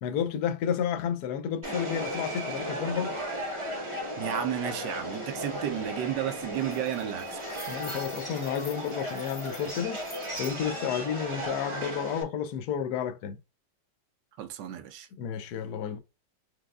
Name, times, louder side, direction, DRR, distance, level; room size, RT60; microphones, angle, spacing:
voice 1, 0.0-3.1 7.7-10.0 10.4-13.4 15.2-16.0, left 8 dB, 70° left, 1.0 m, -31 dB
Subway metro underground, 1.6-12.2, equal, 30° right, 0.6 m, -35 dB
voice 2, 4.2-7.6 14.4-15.1, right 11 dB, 75° right, 1.2 m, -33 dB
sound 1, 5.4-5.5 5.8-6.1 6.4-10.6, left 3 dB, 25° left, 0.4 m, -48 dB
4.7 x 2.3 x 2.3 m
omnidirectional pair, 2.0 m